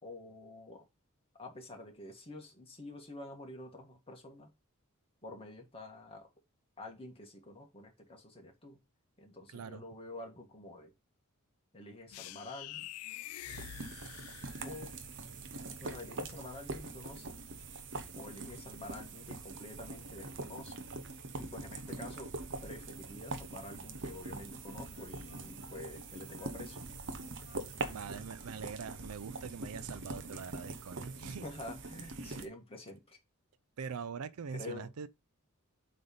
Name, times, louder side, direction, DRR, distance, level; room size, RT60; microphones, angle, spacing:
voice 1, 0.0-0.9 1.4-4.5 5.2-6.3 6.8-8.8 9.2-10.9 11.7-12.9 14.6-14.9 15.8-17.4 18.2-20.8 21.4-22.4 22.6-26.8 31.3-33.2 34.5-34.9, left 2 dB, 25° left, 1.9 m, -48 dB
voice 2, 9.5-9.8 15.6-15.7 27.9-31.5 32.2-32.4 33.8-35.1, right 6 dB, 80° right, 0.5 m, -43 dB
sound 1, 12.1-15.0, left 15 dB, 75° left, 0.3 m, -46 dB
sound 2, 13.5-32.5, right 3 dB, 60° right, 0.9 m, -43 dB
Wind instrument woodwind instrument, 23.9-29.2, left 2 dB, 55° left, 2.2 m, -62 dB
7.8 x 3.5 x 5.5 m
head